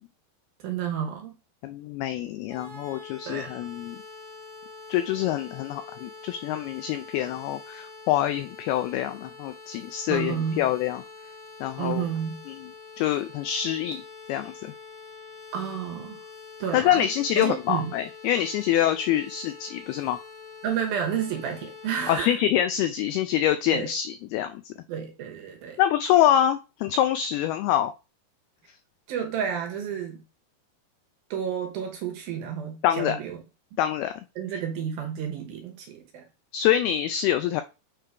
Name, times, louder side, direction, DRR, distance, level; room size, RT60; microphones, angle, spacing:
voice 1, 0.6-1.4 3.3-3.5 10.1-10.6 11.8-12.4 15.5-16.2 16.6-17.1 17.4-17.9 20.6-22.4 23.7-23.9 24.9-25.8 29.1-30.2 31.3-33.4 34.4-36.3, right 8 dB, 70° right, 3 dB, 2.5 m, -31 dB
voice 2, 1.6-4.0 4.9-11.0 11.6-12.0 12.5-12.7 13.0-14.0 14.3-14.7 16.7-20.2 22.1-24.7 25.8-27.9 32.8-33.2 33.8-34.1 36.5-37.6, left 11 dB, 90° left, 9 dB, 2.2 m, -25 dB
sound 1, 2.5-22.3, left 4 dB, 20° left, 1.5 m, -45 dB
8.7 x 3.8 x 4.7 m, 0.30 s
omnidirectional pair, 5.1 m